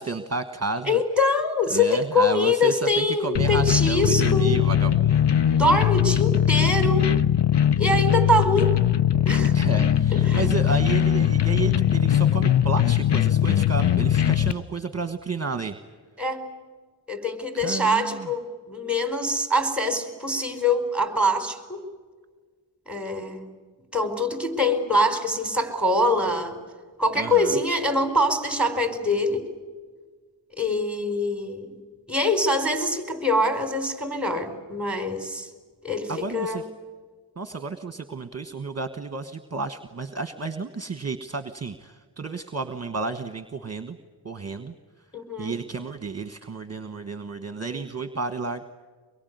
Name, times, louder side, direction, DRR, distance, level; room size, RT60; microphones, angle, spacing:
voice 1, 0.0-1.0 1.7-5.3 9.5-15.8 17.5-18.3 27.1-27.6 36.1-36.6 37.4-44.0 44.2-44.7 45.4-48.6, right 3 dB, 35° right, 9 dB, 1.3 m, -32 dB
voice 2, 0.9-4.6 5.5-7.1 7.8-8.7 9.2-9.5 10.3-10.5 16.2-16.5 17.1-21.8 22.9-23.5 23.9-26.6 27.0-29.5 30.6-31.7 32.1-35.5 35.8-36.6 45.1-45.6, left 1 dB, ahead, 7 dB, 4.4 m, -24 dB
sound 1, 3.3-14.5, left 10 dB, 65° left, 0.8 m, -20 dB
24.5 x 22.5 x 9.4 m, 1.5 s
wide cardioid pair, 75°, 45 cm